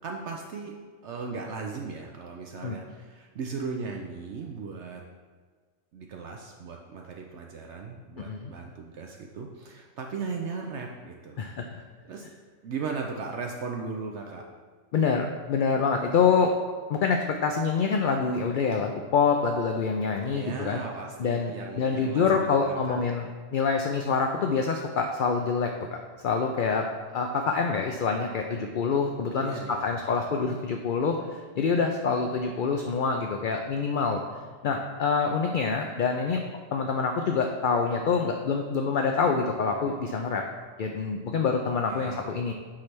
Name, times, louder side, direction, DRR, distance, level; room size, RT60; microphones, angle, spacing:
voice 1, 0.0-0.7 1.0-5.0 5.9-11.4 11.7-12.3 12.6-14.4 20.3-23.2 29.4-30.1 41.9-42.3, right 4 dB, 65° right, 1 dB, 0.9 m, -37 dB
voice 2, 11.4-11.8 14.9-16.5 16.9-20.8 21.2-23.3 23.5-26.9 27.1-34.2 34.6-36.4 36.7-40.4 40.8-42.5, left 5 dB, 60° left, 3 dB, 0.5 m, -26 dB
8.5 x 3.3 x 5.9 m, 1.5 s
omnidirectional pair, 1.3 m